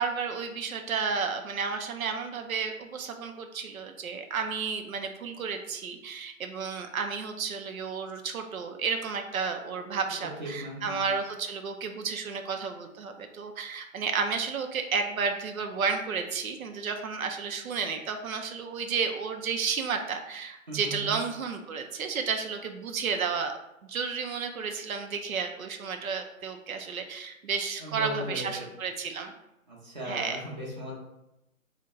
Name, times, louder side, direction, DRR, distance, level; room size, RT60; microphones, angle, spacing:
voice 1, 0.0-29.3 30.0-30.4, right 5 dB, 90° right, 5 dB, 0.6 m, -32 dB
voice 2, 10.4-11.0 20.7-21.2 27.8-28.6 29.7-30.9, right 1 dB, 35° right, -5 dB, 0.8 m, -37 dB
3.9 x 2.1 x 3.7 m, 0.89 s
hypercardioid pair, 180°, 41 cm